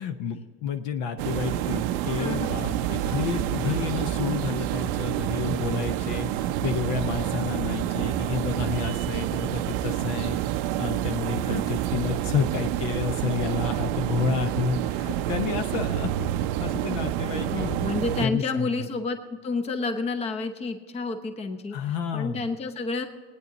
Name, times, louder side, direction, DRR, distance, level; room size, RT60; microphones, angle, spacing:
voice 1, 0.0-16.3 16.6-18.9 21.7-22.5, left 6 dB, 50° left, 8 dB, 0.8 m, -30 dB
sound 1, 1.2-18.3, right 12 dB, 45° right, 0.6 m, -28 dB
voice 2, 2.2-2.6 11.5-11.8 17.5-19.2 19.4-21.8 22.1-23.1, left 3 dB, 20° left, 8 dB, 1.0 m, -29 dB
19.5 x 9.6 x 4.1 m, 1.5 s
supercardioid pair, 140°, 30 cm